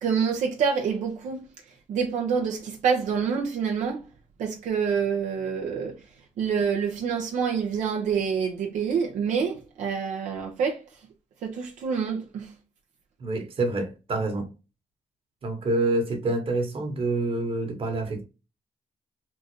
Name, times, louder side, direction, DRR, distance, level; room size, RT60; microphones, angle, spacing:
voice 1, 0.0-1.5 1.9-4.0 4.4-6.0 6.4-10.8 11.4-12.5, right 6 dB, 90° right, 0.8 m, -27 dB
voice 2, 13.2-14.5 15.4-18.2, right 2 dB, 50° right, 1.3 m, -27 dB
3.7 x 2.5 x 3.0 m
cardioid pair, 105°, 12 cm